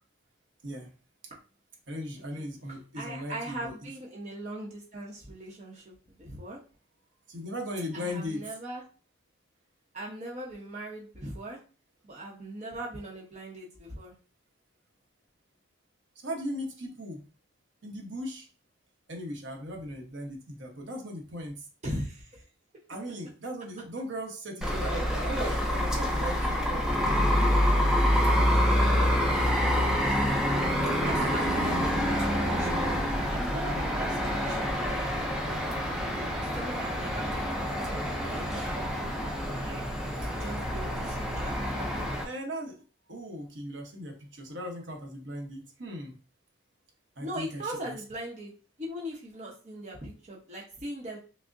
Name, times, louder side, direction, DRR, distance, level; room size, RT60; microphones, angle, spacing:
voice 1, 1.9-3.9 7.3-8.6 16.2-17.2 17.8-18.5 19.1-21.7 22.9-27.3 30.1-30.3 31.1-32.2 42.2-42.8 43.1-46.2 47.2-48.0, equal, 65° right, 1 dB, 0.9 m, -38 dB
voice 2, 2.9-5.9 6.2-6.6 7.9-8.8 9.9-11.6 12.0-14.1 21.8-22.4 31.0-32.9 33.3-37.4 37.7-39.8 40.2-42.3 47.2-48.5 48.8-51.2, right 1 dB, 35° right, -3 dB, 0.8 m, -40 dB
sound 1, 24.6-42.2, equal, 5° right, 0.5 m, -27 dB
6.0 x 2.1 x 2.6 m, 0.37 s
head